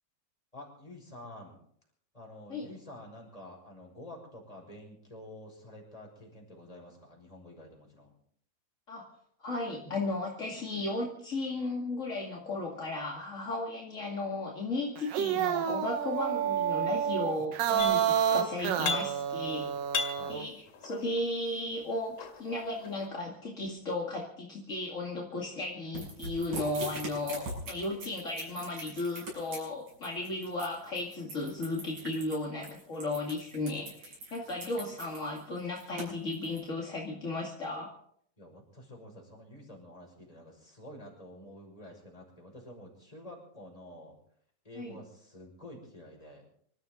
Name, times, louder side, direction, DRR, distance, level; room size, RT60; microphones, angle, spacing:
voice 1, 0.5-1.6 2.1-8.1 20.2-20.4 38.4-44.2 44.6-46.5, left 1 dB, 10° left, 0 dB, 5.6 m, -49 dB
voice 2, 9.4-19.7 20.3-37.9 44.7-45.0, left 2 dB, 25° left, -2 dB, 1.9 m, -35 dB
sound 1, 15.0-20.4, right 9 dB, 70° right, 2.8 m, -29 dB
sound 2, 17.8-18.3 18.6-19.4 19.7-21.3 21.9-23.1, left 6 dB, 85° left, 4.0 m, -36 dB
sound 3, 26.0-36.6, right 2 dB, 50° right, 8.1 m, -42 dB
26.0 x 14.0 x 3.9 m, 0.64 s
omnidirectional pair, 4.3 m